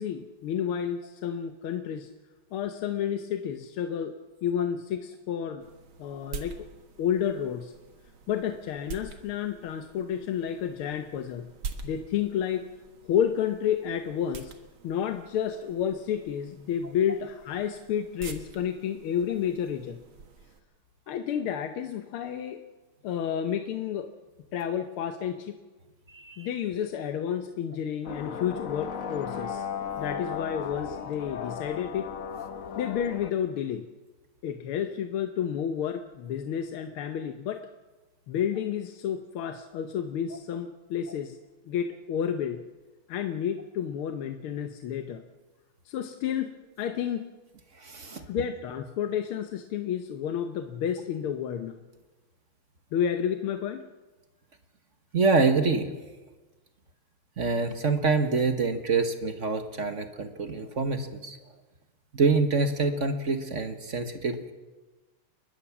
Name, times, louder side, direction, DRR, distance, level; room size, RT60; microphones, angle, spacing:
voice 1, 0.0-2.1 2.5-4.1 4.4-5.7 6.0-6.7 7.0-7.7 8.3-11.5 11.8-12.7 13.1-14.5 14.8-20.0 21.1-22.6 23.0-24.1 24.5-25.6 26.4-29.6 30.0-32.1 32.8-33.9 34.4-37.6 38.3-41.4 41.7-42.6 43.1-45.2 45.9-47.2 48.1-51.8 52.9-53.9, left 9 dB, 90° left, 7 dB, 1.8 m, -30 dB
sound 1, 5.6-20.6, right 5 dB, 70° right, 2.4 m, -46 dB
voice 2, 26.1-26.5 47.8-48.2 55.1-55.9 57.4-61.4 62.1-64.5, right 4 dB, 40° right, 8 dB, 1.4 m, -26 dB
sound 2, 28.0-33.3, left 7 dB, 50° left, 1.2 m, -36 dB
30.0 x 12.0 x 7.1 m, 1.2 s
omnidirectional pair, 2.3 m